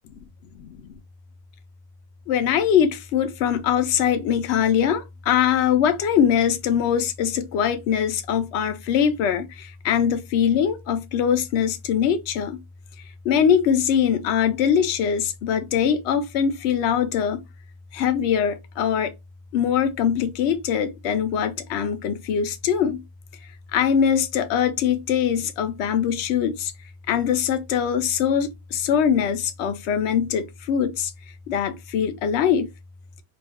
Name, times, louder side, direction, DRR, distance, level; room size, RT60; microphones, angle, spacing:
voice 1, 2.3-12.6 13.2-17.4 17.9-19.1 19.5-23.0 23.7-26.7 27.1-31.1 31.5-32.7, left 8 dB, 70° left, 0.6 m, -22 dB
2.5 x 2.3 x 3.4 m
omnidirectional pair, 1.6 m